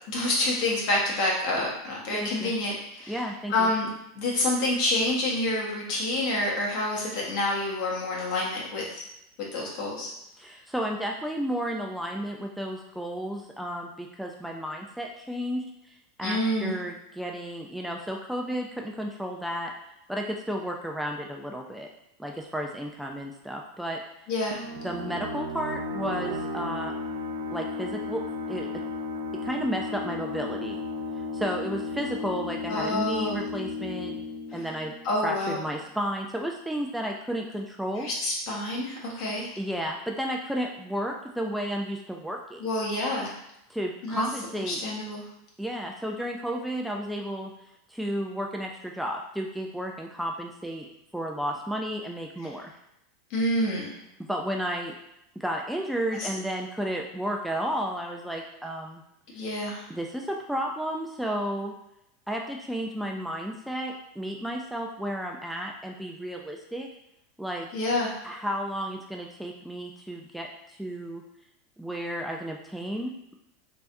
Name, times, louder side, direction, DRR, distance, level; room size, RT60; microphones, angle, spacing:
voice 1, 0.1-3.2 3.5-9.0 9.4-10.1 16.2-16.8 24.3-24.6 32.7-33.4 34.5-34.6 35.0-35.6 38.0-39.5 42.6-43.4 44.0-44.2 44.7-45.2 53.3-53.9 56.1-56.3 59.3-59.8 67.7-68.1, left 1 dB, 60° left, -3 dB, 1.3 m, -28 dB
voice 2, 2.1-2.5 3.1-3.7 10.4-19.7 20.1-21.9 22.2-24.0 24.8-26.9 27.5-28.2 28.5-28.8 29.3-30.8 31.3-34.2 34.5-34.9 35.2-38.1 39.6-42.6 43.7-44.8 45.6-47.5 47.9-50.9 51.1-52.7 54.2-54.9 55.4-59.0 59.9-61.7 62.3-66.9 67.4-67.7 68.2-71.2 71.8-73.4, equal, 5° right, 0 dB, 0.4 m, -32 dB
sound 1, 24.5-35.8, left 3 dB, 75° right, 0.3 m, -34 dB
3.5 x 3.2 x 2.6 m, 0.82 s
hypercardioid pair, 95°, 0 cm